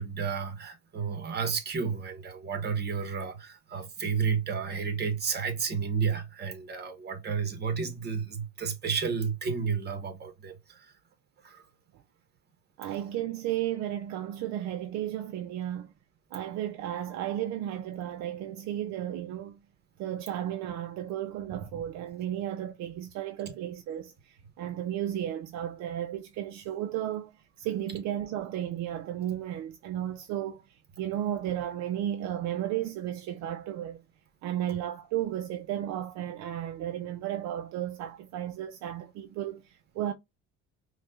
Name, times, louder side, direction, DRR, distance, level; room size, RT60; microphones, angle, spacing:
voice 1, 0.0-10.9 11.4-11.6 34.7-34.8, right 6 dB, 35° right, 1.2 m, -32 dB
voice 2, 12.8-15.9 16.3-19.6 20.0-27.3 27.6-34.0 34.4-40.1, right 11 dB, 65° right, 0.6 m, -34 dB
5.2 x 2.4 x 2.3 m
cardioid pair, 120°, 30 cm